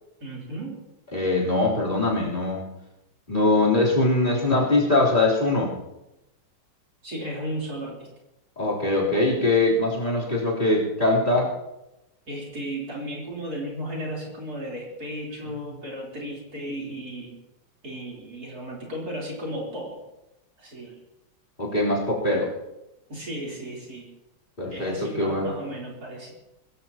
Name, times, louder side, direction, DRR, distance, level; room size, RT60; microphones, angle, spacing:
voice 1, 0.2-0.8 7.0-8.1 12.3-17.4 17.8-20.0 20.6-21.0 23.1-24.1 24.7-26.3, equal, 55° right, -3 dB, 4.3 m, -34 dB
voice 2, 1.1-2.7 3.3-5.7 8.6-11.5 21.6-22.5 24.6-25.5, left 2 dB, 25° left, -6 dB, 3.8 m, -22 dB
23.0 x 15.5 x 3.0 m, 0.93 s
omnidirectional pair, 2.0 m